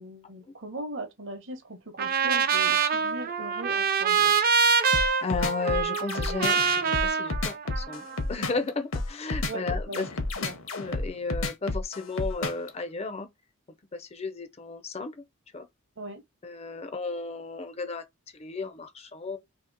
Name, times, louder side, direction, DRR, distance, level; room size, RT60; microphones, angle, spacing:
voice 1, 0.0-4.4 9.5-10.0 10.4-10.6 16.0-16.2, right 1 dB, 60° right, 0.8 m, -39 dB
Trumpet, 2.0-8.2, right 6 dB, 40° right, 0.4 m, -25 dB
sound 1, 4.9-12.7, left 2 dB, 65° left, 0.8 m, -30 dB
voice 2, 4.9-8.0 8.3-10.1 10.7-13.3 13.9-15.1 15.5-15.7 16.4-18.0 18.3-19.4, left 3 dB, 30° left, 0.4 m, -34 dB
2.8 x 2.8 x 3.7 m
head